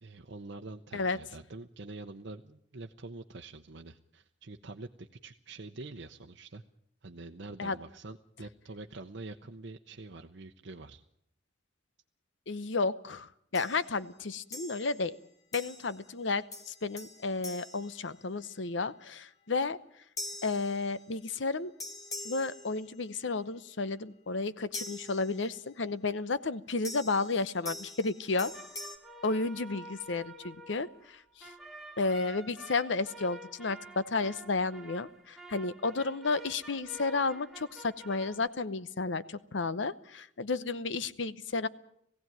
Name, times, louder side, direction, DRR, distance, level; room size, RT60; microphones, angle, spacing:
voice 1, 0.0-6.6 7.0-11.0, right 3 dB, 70° right, 4 dB, 0.8 m, -46 dB
voice 2, 12.5-15.2 15.5-19.8 20.4-21.7 22.2-28.5 29.2-31.5 32.0-41.7, left 3 dB, 80° left, 15 dB, 0.8 m, -32 dB
sound 1, 13.5-13.9 14.5-15.1 15.5-16.1 16.5-18.7 20.2-21.4 21.8-23.3 24.7-25.8 26.8-29.0, left 2 dB, 20° left, 1.3 m, -44 dB
sound 2, 28.3-38.5, right 1 dB, ahead, 1.7 m, -49 dB
19.0 x 16.0 x 9.2 m, 0.73 s
head